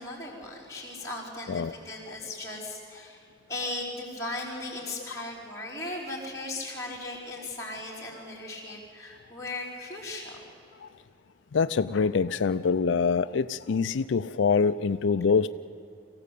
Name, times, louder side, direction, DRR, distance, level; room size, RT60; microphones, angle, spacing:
voice 1, 0.0-10.4, left 2 dB, 15° left, -4 dB, 4.7 m, -37 dB
voice 2, 11.5-15.5, left 5 dB, 75° left, 12 dB, 0.4 m, -25 dB
24.5 x 15.5 x 8.4 m, 2.8 s
head